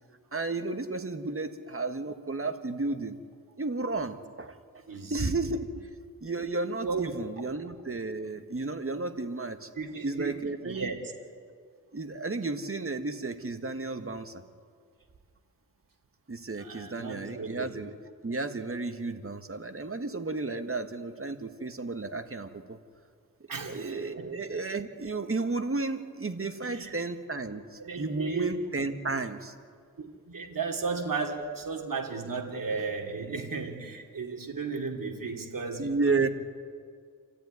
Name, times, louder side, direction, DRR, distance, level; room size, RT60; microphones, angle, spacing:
voice 1, 0.3-3.2 3.6-4.6 5.1-5.7 6.2-9.7 10.0-10.9 11.9-14.4 16.3-18.0 18.2-22.8 23.6-29.5 35.8-36.3, right 3 dB, 35° right, 8 dB, 1.7 m, -32 dB
voice 2, 6.8-7.1 7.5-7.6 9.8-11.0 16.6-17.7 23.5-23.9 24.2-24.3 26.6-27.0 27.8-28.6 30.0-35.9, right 4 dB, 65° right, 1 dB, 2.7 m, -35 dB
28.0 x 14.0 x 9.7 m, 2.1 s
cardioid pair, 60°, 36 cm